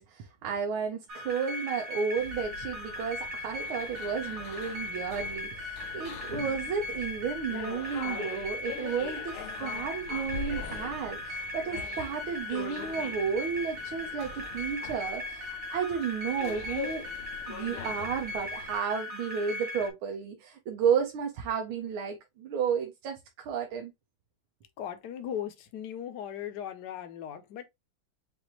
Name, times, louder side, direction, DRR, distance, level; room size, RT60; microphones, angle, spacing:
voice 1, 0.0-17.0 17.5-23.9, right 7 dB, 75° right, 1.6 m, -32 dB
sound 1, 1.1-19.9, left 2 dB, 45° right, 1.4 m, -38 dB
sound 2, 2.2-18.8, left 8 dB, 80° left, 1.5 m, -43 dB
voice 2, 24.8-27.7, left 9 dB, 65° left, 1.3 m, -38 dB
6.0 x 2.6 x 2.9 m
omnidirectional pair, 2.3 m